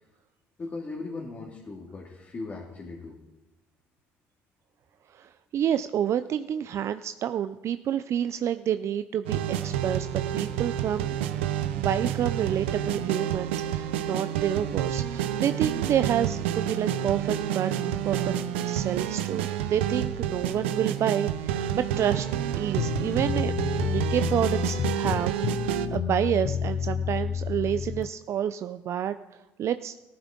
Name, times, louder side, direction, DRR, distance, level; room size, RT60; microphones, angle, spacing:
voice 1, 0.6-3.2, left 3 dB, 35° left, -2 dB, 2.1 m, -38 dB
voice 2, 5.1-11.1 11.7-18.3 18.6-22.3 22.5-23.5 23.8-29.1 29.6-29.9, right 10 dB, 50° right, 11 dB, 0.4 m, -29 dB
sound 1, 9.2-25.9, right 10 dB, 90° right, 0.7 m, -29 dB
sound 2, 22.8-28.1, left 8 dB, 50° left, 0.3 m, -30 dB
15.0 x 13.0 x 3.8 m, 1.0 s
supercardioid pair, 70°, 6 cm